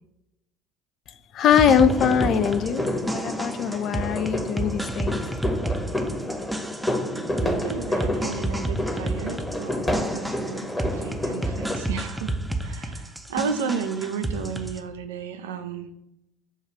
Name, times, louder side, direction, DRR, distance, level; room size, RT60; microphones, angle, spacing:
voice 1, 1.3-5.2, left 8 dB, 50° left, 11 dB, 0.3 m, -22 dB
sound 1, 1.5-14.8, right 1 dB, 5° right, 0.5 m, -31 dB
sound 2, 1.8-11.7, left 1 dB, 15° left, 0.9 m, -30 dB
voice 2, 7.4-12.3 12.6-15.9, right 6 dB, 80° right, 8 dB, 0.4 m, -33 dB
6.5 x 2.3 x 3.4 m, 0.85 s
hypercardioid pair, 65°, 0 cm